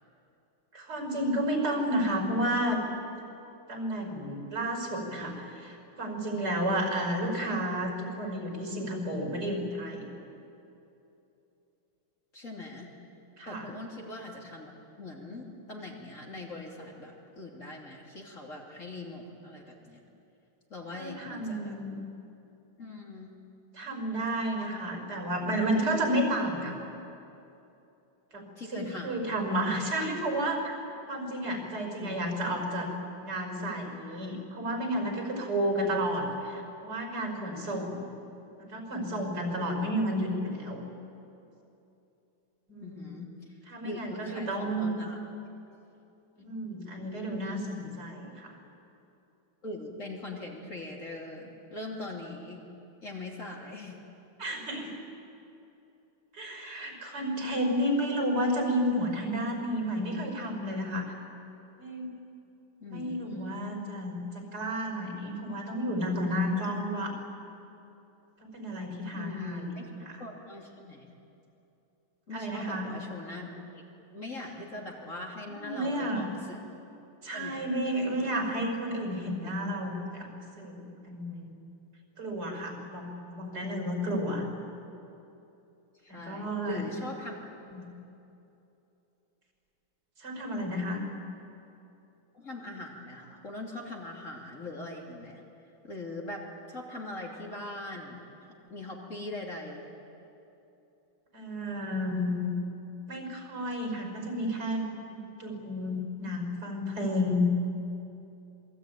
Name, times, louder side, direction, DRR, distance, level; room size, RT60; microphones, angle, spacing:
voice 1, 0.7-2.8 3.7-10.1 13.4-13.7 20.9-22.0 23.7-26.8 28.3-30.6 31.1-32.9 33.2-38.0 38.6-40.8 42.7-43.2 43.7-44.9 46.4-48.6 54.4-54.9 56.3-61.1 61.8-62.1 62.9-67.1 68.4-69.7 70.1-70.2 72.3-72.9 75.5-76.3 77.2-81.5 82.2-84.4 86.1-86.8 87.7-87.9 90.2-91.0 101.3-102.6 103.1-107.4, equal, 55° right, 2 dB, 6.0 m, -31 dB
voice 2, 12.3-12.9 13.5-14.7 15.0-20.0 20.7-21.8 22.8-23.3 28.6-29.3 32.0-32.3 42.8-43.6 43.8-45.2 47.4-47.5 49.6-52.7 53.0-54.0 62.8-63.6 69.1-69.9 70.2-71.1 72.3-73.8 74.1-76.6 77.3-77.7 78.2-78.3 86.0-87.4 92.3-95.4 95.8-98.2 98.5-99.9, left 2 dB, 40° left, -1 dB, 3.3 m, -41 dB
27.5 x 22.0 x 9.3 m, 2.9 s
omnidirectional pair, 2.2 m